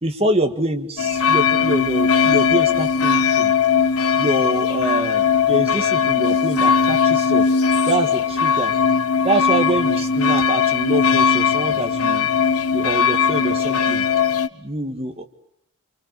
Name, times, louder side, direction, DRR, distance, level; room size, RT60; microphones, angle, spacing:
voice 1, 0.0-3.5 4.2-7.5 7.9-8.7 9.2-12.3 12.7-14.1 14.6-15.3, right 1 dB, 25° right, 5 dB, 1.8 m, -25 dB
sound 1, 1.0-14.5, left 6 dB, 75° left, 1.0 m, -19 dB
27.5 x 25.5 x 7.0 m, 0.69 s
head